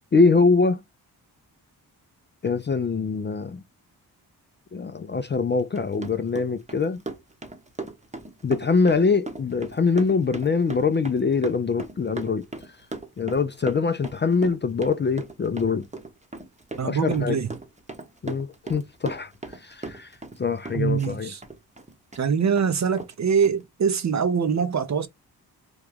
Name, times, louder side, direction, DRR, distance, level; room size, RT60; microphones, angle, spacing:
voice 1, 0.1-0.8 2.4-3.6 4.7-7.0 8.4-12.4 13.2-15.9 16.8-17.4 18.2-19.3 19.6-20.1 20.4-21.3, left 4 dB, 25° left, 0.4 m, -23 dB
Run, 5.6-20.4 20.6-22.2 22.6-22.7 23.0-23.1 23.4-23.5, right 3 dB, 15° right, 0.9 m, -37 dB
voice 2, 16.7-17.6 20.7-21.4 22.1-25.1, right 6 dB, 40° right, 0.7 m, -24 dB
3.0 x 2.2 x 3.5 m
cardioid pair, 60°, 41 cm